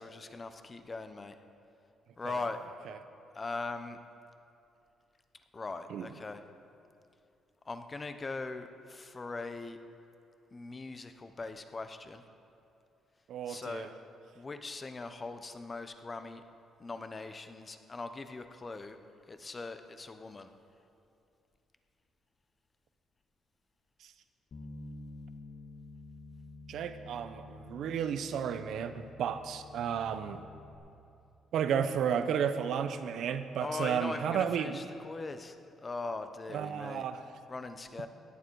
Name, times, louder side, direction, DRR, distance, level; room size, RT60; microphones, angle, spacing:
voice 1, 0.0-1.3 2.2-2.6 3.3-4.0 5.5-6.4 7.7-9.8 10.5-12.2 13.5-13.9 14.3-16.4 16.8-19.0 19.3-20.5 33.6-37.1 37.5-38.1, left 3 dB, 30° left, 9 dB, 0.9 m, -40 dB
voice 2, 13.3-13.9 26.7-30.4 31.5-34.8 36.5-37.3, right 8 dB, 75° right, 10 dB, 0.8 m, -33 dB
Bass guitar, 24.5-30.8, left 2 dB, 60° left, 1.6 m, -49 dB
16.5 x 11.5 x 4.7 m, 2.7 s
cardioid pair, 90°, 0 cm